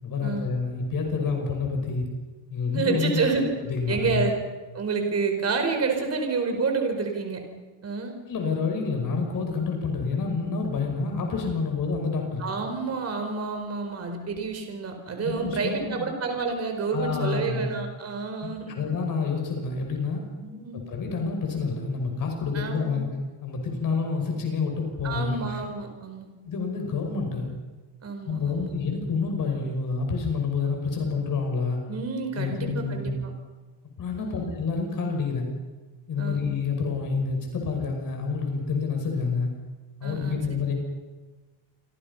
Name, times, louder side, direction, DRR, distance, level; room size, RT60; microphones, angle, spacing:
voice 1, 0.0-2.1 2.5-3.2 3.7-4.2 8.3-12.4 15.2-16.1 16.9-17.7 18.4-20.2 20.7-23.1 23.4-25.5 26.5-27.5 28.3-31.8 32.3-33.2 34.0-35.5 36.1-39.5 40.0-40.7, left 4 dB, 40° left, 2 dB, 6.0 m, -28 dB
voice 2, 2.7-3.5 3.9-4.3 4.7-7.4 7.8-8.2 12.4-18.8 20.4-20.8 22.5-23.0 25.0-26.3 28.0-28.7 31.9-33.3 34.2-34.5 36.2-36.4 40.0-40.4, right 4 dB, 30° right, 4 dB, 4.8 m, -29 dB
28.5 x 25.0 x 5.7 m, 1.2 s
cardioid pair, 165°, 49 cm